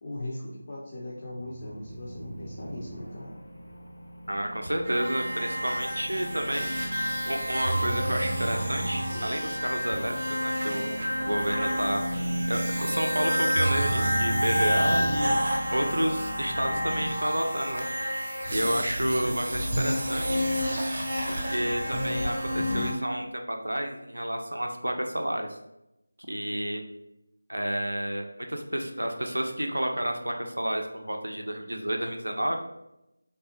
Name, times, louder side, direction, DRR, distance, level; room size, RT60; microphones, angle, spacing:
voice 1, 0.0-3.3, left 1 dB, 30° left, -5 dB, 0.4 m, -39 dB
sound 1, 1.4-17.1, right 1 dB, 70° left, 0.7 m, -34 dB
voice 2, 4.3-7.0 7.3-15.4 15.7-17.9 18.5-20.5 21.3-25.6 26.3-26.8 27.5-32.6, right 1 dB, 70° right, 3 dB, 0.4 m, -30 dB
sound 2, 4.8-22.9, equal, 40° right, 0.7 m, -30 dB
3.3 x 2.1 x 2.9 m, 0.89 s
figure-of-eight pair, 165°, 0 cm